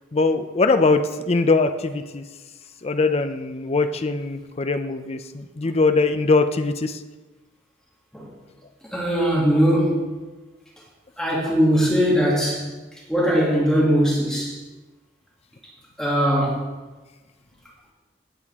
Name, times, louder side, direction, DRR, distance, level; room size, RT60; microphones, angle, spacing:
voice 1, 0.1-2.2 2.8-7.0, left 3 dB, 35° left, 8 dB, 0.5 m, -21 dB
voice 2, 8.9-10.1 11.2-12.7 13.1-14.6 16.0-16.6, equal, 5° left, -6 dB, 2.6 m, -20 dB
17.0 x 8.6 x 3.6 m, 1.2 s
head